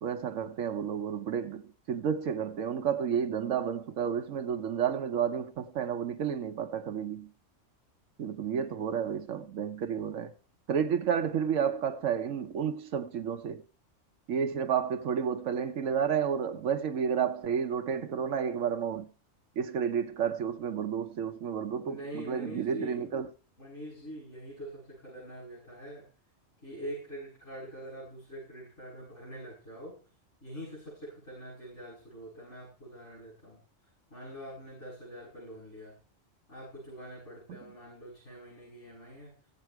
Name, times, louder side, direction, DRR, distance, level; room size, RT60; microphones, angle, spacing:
voice 1, 0.0-7.3 8.2-10.3 10.7-13.6 14.3-19.1 19.6-23.3, right 7 dB, 85° right, 1.2 m, -31 dB
voice 2, 21.8-23.1 23.6-26.1 26.6-30.0 30.4-33.6 34.1-35.9 36.5-39.3, equal, 65° left, 8.4 m, -44 dB
17.0 x 7.7 x 4.6 m
omnidirectional pair, 1.3 m